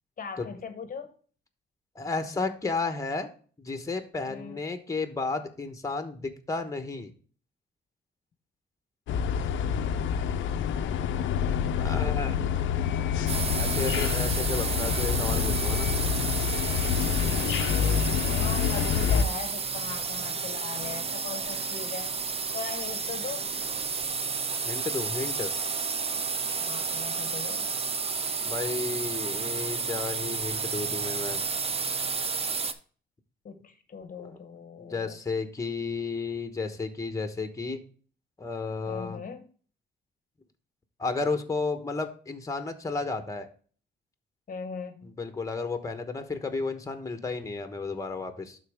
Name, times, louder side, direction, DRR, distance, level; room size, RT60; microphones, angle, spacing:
voice 1, 0.2-1.1 4.3-4.6 11.0-12.7 18.1-22.2 22.5-23.5 26.6-27.7 33.4-35.1 38.9-39.4 44.5-45.2, left 5 dB, 45° left, 8 dB, 0.9 m, -40 dB
voice 2, 1.9-3.3 3.6-7.1 11.7-12.4 13.5-15.9 24.6-25.5 28.4-31.4 34.2-34.4 34.8-37.8 38.4-39.2 41.0-43.5 45.0-48.6, left 3 dB, 15° left, 7 dB, 1.1 m, -33 dB
sound 1, 9.1-19.2, left 7 dB, 90° left, 0.6 m, -27 dB
sound 2, 13.3-32.7, right 5 dB, 30° right, 0.6 m, -31 dB
11.5 x 4.0 x 3.5 m, 0.42 s
cardioid pair, 95°, 19 cm